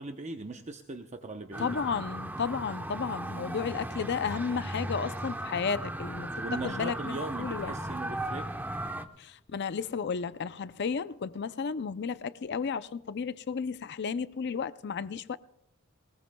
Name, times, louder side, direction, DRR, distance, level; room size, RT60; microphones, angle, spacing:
voice 1, 0.0-2.0 3.3-4.0 6.4-8.5, right 3 dB, 35° right, 0.7 m, -40 dB
sound 1, 1.5-9.0, right 1 dB, 10° right, 0.8 m, -37 dB
voice 2, 1.6-6.3 6.6-7.7 9.2-15.4, left 6 dB, 55° left, 0.5 m, -33 dB
20.5 x 20.0 x 2.2 m
head